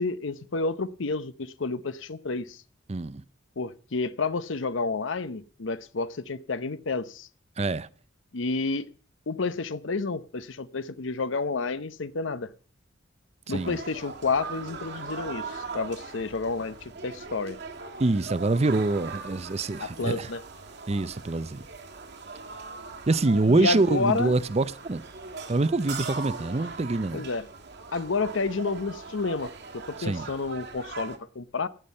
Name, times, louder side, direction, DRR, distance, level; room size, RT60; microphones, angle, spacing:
voice 1, 0.0-2.6 3.6-7.3 8.3-8.8 9.3-12.5 13.5-15.4 15.7-16.7 17.0-17.6 19.8-20.4 23.5-24.3 27.1-27.4 27.9-31.7, left 4 dB, 75° left, 0.8 m, -30 dB
voice 2, 2.9-3.2 7.6-7.9 13.5-13.8 18.0-20.3 20.9-21.6 23.1-25.0 25.5-27.3 30.0-30.3, right 2 dB, 35° right, 0.5 m, -25 dB
sound 1, 13.5-31.2, right 4 dB, 55° right, 1.7 m, -40 dB
15.5 x 9.4 x 5.4 m
head